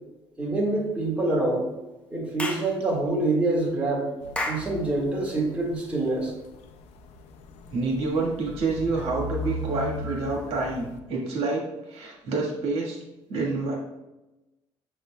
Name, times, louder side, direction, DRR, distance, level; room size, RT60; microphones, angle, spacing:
voice 1, 0.4-1.7 2.1-4.1 4.5-6.3 10.0-10.2, right 2 dB, 10° right, -4 dB, 1.5 m, -26 dB
Clapping / Chirp tweet, 2.4-2.7 4.3-4.7, left 1 dB, 10° left, 0.7 m, -30 dB
sound 1, 4.2-11.0, left 2 dB, 90° left, 0.5 m, -38 dB
voice 2, 7.7-13.0 13.3-13.8, right 3 dB, 70° right, -1 dB, 1.4 m, -28 dB
6.6 x 6.4 x 2.2 m, 1.0 s
cardioid pair, 150°, 11 cm